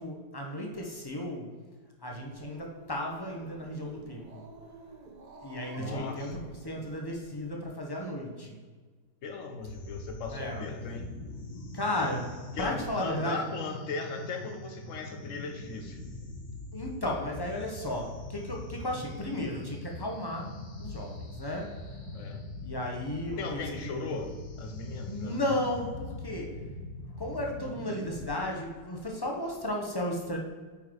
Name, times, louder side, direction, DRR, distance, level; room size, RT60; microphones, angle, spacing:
voice 1, 0.0-1.5 2.0-4.5 5.4-8.6 10.3-10.7 11.7-13.4 16.7-21.8 22.6-24.2 25.0-26.7 27.2-30.4, left 1 dB, 15° left, 0 dB, 0.9 m, -34 dB
Growling, 2.1-7.5, right 3 dB, 85° right, 0.4 m, -51 dB
voice 2, 5.8-6.4 9.2-11.1 12.6-16.0 22.1-22.5 23.4-24.3 24.6-25.4, left 4 dB, 50° left, 4 dB, 1.2 m, -37 dB
sound 1, 9.6-28.2, left 2 dB, 80° left, 2.4 m, -42 dB
8.6 x 4.6 x 4.8 m, 1.4 s
omnidirectional pair, 2.0 m